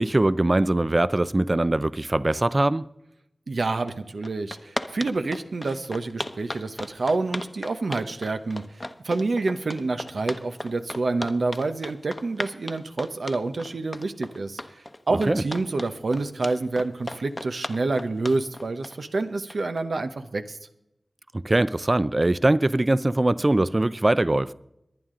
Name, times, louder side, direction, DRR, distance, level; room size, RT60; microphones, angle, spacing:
voice 1, 0.0-2.8 15.3-15.4 21.4-24.5, right 2 dB, 35° right, 0.5 m, -22 dB
voice 2, 3.5-8.6 9.0-20.6, right 3 dB, 80° right, 0.9 m, -28 dB
sound 1, 3.9-4.0 4.2-19.8, left 1 dB, 25° left, 0.9 m, -35 dB
22.5 x 9.2 x 3.8 m
wide cardioid pair, 60°, 0 cm